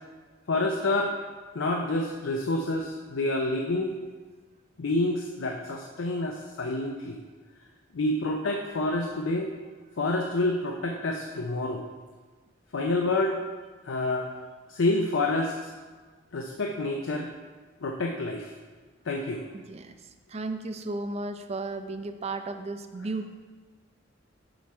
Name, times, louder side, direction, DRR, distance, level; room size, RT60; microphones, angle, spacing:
voice 1, 0.5-1.2 1.5-4.0 4.8-7.2 7.9-9.5 10.0-11.8 12.7-13.4 13.8-14.3 14.7-15.7 16.3-17.3 17.8-18.5 19.1-19.5, left 2 dB, 80° left, 2 dB, 0.5 m, -28 dB
voice 2, 19.5-23.3, right 2 dB, 35° right, 8 dB, 0.4 m, -34 dB
7.7 x 4.7 x 4.3 m, 1.4 s
head